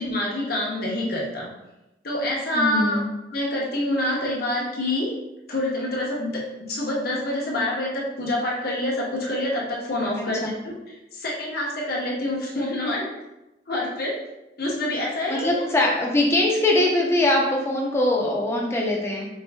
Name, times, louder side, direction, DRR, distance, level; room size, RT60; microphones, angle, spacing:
voice 1, 0.0-1.5 2.0-3.0 3.3-5.1 5.5-10.7 11.1-13.1 13.7-14.2 14.6-15.9, left 1 dB, 55° left, -3 dB, 0.9 m, -26 dB
voice 2, 2.5-3.1 10.2-10.5 15.3-19.3, left 1 dB, 15° left, -1 dB, 0.5 m, -22 dB
4.4 x 2.5 x 2.2 m, 0.95 s
head